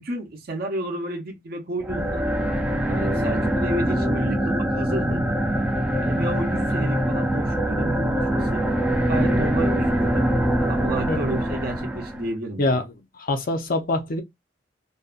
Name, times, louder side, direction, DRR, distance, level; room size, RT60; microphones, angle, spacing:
voice 1, 0.0-2.3 2.9-5.2 6.0-8.7 9.1-10.3 10.7-12.8, right 1 dB, 50° right, 0.7 m, -31 dB
sound 1, 1.8-12.3, right 1 dB, 5° right, 0.4 m, -23 dB
voice 2, 11.1-11.4 12.6-12.8 13.2-14.2, left 2 dB, 50° left, 0.5 m, -24 dB
2.6 x 2.2 x 2.4 m
head